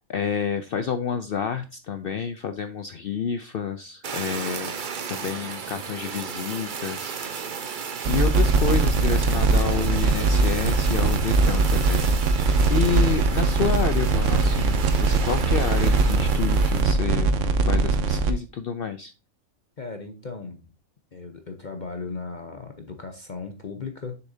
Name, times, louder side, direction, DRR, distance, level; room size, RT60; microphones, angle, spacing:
voice 1, 0.1-4.7 5.1-7.7 8.1-17.3 17.7-19.1, left 7 dB, 65° left, 11 dB, 0.5 m, -29 dB
Fire, 4.0-16.9, right 6 dB, 45° right, 0.8 m, -34 dB
sound 1, 8.0-18.3, right 3 dB, 65° right, 1.1 m, -21 dB
voice 2, 19.8-20.6 21.1-24.2, left 4 dB, 40° left, 5 dB, 0.8 m, -36 dB
7.2 x 6.6 x 2.6 m, 0.30 s
omnidirectional pair, 1.5 m